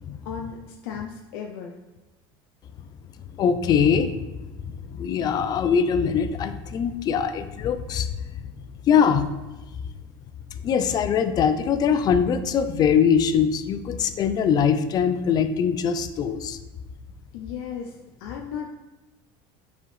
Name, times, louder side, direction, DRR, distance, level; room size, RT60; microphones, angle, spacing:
voice 1, 0.2-1.7 17.3-18.7, left 7 dB, 80° left, 2 dB, 0.6 m, -35 dB
voice 2, 3.4-4.3 4.6-8.1 8.9-9.2 10.6-16.6, left 7 dB, 35° left, 10 dB, 0.5 m, -22 dB
7.5 x 4.8 x 3.3 m, 1.1 s
cardioid pair, 145°, 12 cm